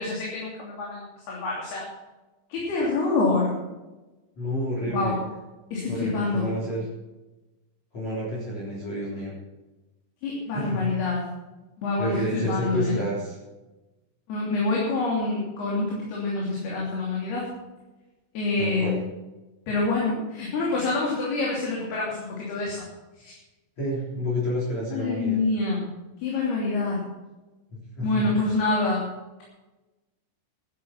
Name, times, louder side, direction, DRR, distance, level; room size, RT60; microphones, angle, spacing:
voice 1, 0.0-1.9 2.5-3.6 4.9-5.2 5.7-6.5 10.2-11.3 11.8-13.0 14.3-17.5 18.3-19.0 19.7-22.8 23.2-23.3 24.9-25.8 26.2-27.0 28.0-29.0, left 3 dB, 60° left, -4 dB, 4.9 m, -26 dB
voice 2, 4.4-5.1 5.9-6.8 7.9-9.3 10.5-10.9 12.0-13.4 18.6-19.0 23.8-25.4 28.0-28.3, equal, 40° left, -6 dB, 4.5 m, -29 dB
14.0 x 11.0 x 5.9 m, 1.1 s
omnidirectional pair, 5.4 m